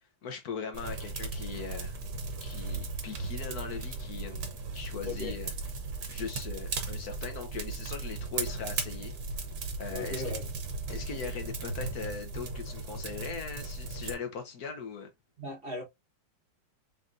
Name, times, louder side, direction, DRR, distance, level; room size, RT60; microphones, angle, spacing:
voice 1, 0.2-2.0 2.4-5.5 6.1-9.1 9.8-10.3 10.9-15.1, left 5 dB, 65° left, 1.4 m, -40 dB
sound 1, 0.7-14.1, right 3 dB, 65° right, 1.5 m, -37 dB
voice 2, 5.0-5.3 9.9-10.4 15.4-15.8, left 2 dB, 35° right, 1.3 m, -37 dB
4.1 x 3.8 x 2.5 m
omnidirectional pair, 1.8 m